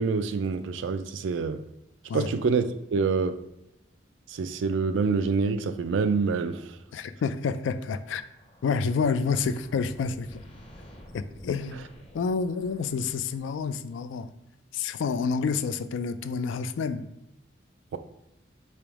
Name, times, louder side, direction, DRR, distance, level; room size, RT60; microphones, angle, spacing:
voice 1, 0.0-1.6 2.1-3.4 4.3-6.8 17.9-18.0, right 4 dB, 85° right, 0.4 m, -26 dB
voice 2, 6.9-8.2 8.6-10.4 11.1-11.8 12.1-14.3 14.7-17.1, left 5 dB, 85° left, 0.3 m, -28 dB
sound 1, 8.2-13.6, equal, 30° left, 0.6 m, -51 dB
3.5 x 2.9 x 4.7 m
head